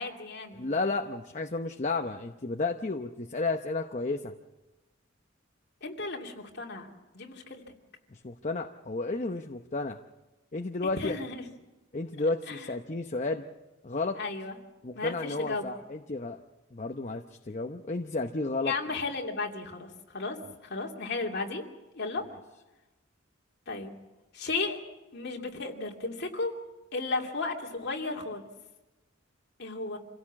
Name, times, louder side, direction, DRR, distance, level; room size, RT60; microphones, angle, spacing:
voice 1, 0.0-0.6 5.8-7.6 11.0-11.4 12.5-12.7 14.1-14.6 14.9-15.7 18.6-20.4 20.6-21.6 21.9-22.2 23.7-23.9 24.3-24.8 25.1-26.5 26.9-28.4 29.6-30.0, left 3 dB, 55° left, 1 dB, 2.8 m, -34 dB
voice 2, 0.5-4.3 8.1-10.0 10.5-11.2 11.9-13.5 13.8-14.1 14.8-16.4 16.7-18.7, left 3 dB, 35° left, 5 dB, 0.8 m, -32 dB
27.0 x 16.5 x 7.4 m, 1.1 s
head